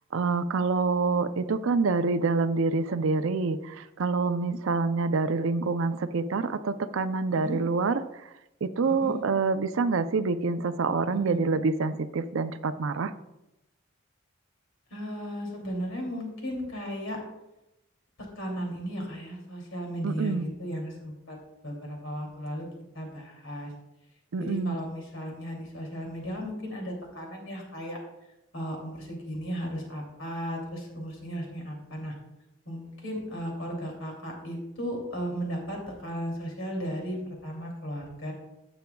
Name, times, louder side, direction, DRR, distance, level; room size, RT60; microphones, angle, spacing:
voice 1, 0.1-8.3 8.6-13.1 20.0-20.5 24.3-24.8, right 4 dB, 75° right, 11 dB, 0.5 m, -27 dB
voice 2, 14.9-17.2 18.3-21.4 21.6-22.7 22.9-23.7 24.4-28.0 28.5-32.1 32.7-38.3, equal, 70° left, 0 dB, 2.7 m, -35 dB
11.5 x 8.0 x 2.3 m, 0.91 s
head